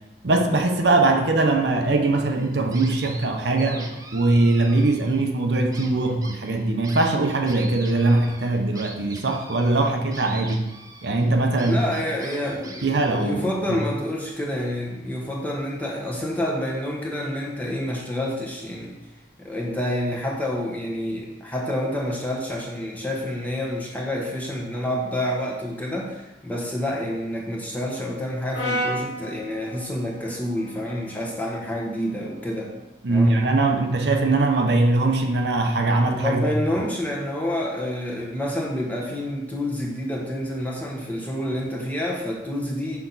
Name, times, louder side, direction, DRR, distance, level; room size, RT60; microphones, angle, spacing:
voice 1, 0.2-10.6 11.0-11.8 12.8-13.8 33.0-36.5, right 2 dB, 65° right, 3 dB, 0.7 m, -21 dB
sound 1, 2.4-3.3 3.6-5.3 5.7-13.5, right 3 dB, 20° right, 0.6 m, -43 dB
sound 2, 10.8-10.9 12.4-14.3, left 2 dB, 40° left, 0.5 m, -44 dB
voice 2, 11.6-12.9 13.2-18.9 19.4-32.7 33.1-33.4 36.2-43.0, left 1 dB, 10° left, -2 dB, 1.1 m, -28 dB
Brass instrument, 28.5-32.8, equal, 70° left, 2.1 m, -34 dB
6.1 x 5.8 x 4.0 m, 1.0 s
head